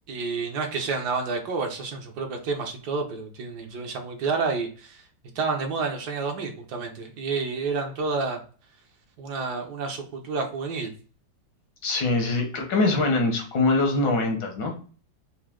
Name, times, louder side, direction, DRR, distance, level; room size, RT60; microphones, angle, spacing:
voice 1, 0.1-5.0 5.3-8.4 9.2-10.9, right 4 dB, 70° right, 3 dB, 1.4 m, -29 dB
voice 2, 11.8-14.7, left 2 dB, 80° left, 2 dB, 1.8 m, -23 dB
4.9 x 2.7 x 3.6 m, 0.39 s
omnidirectional pair, 1.9 m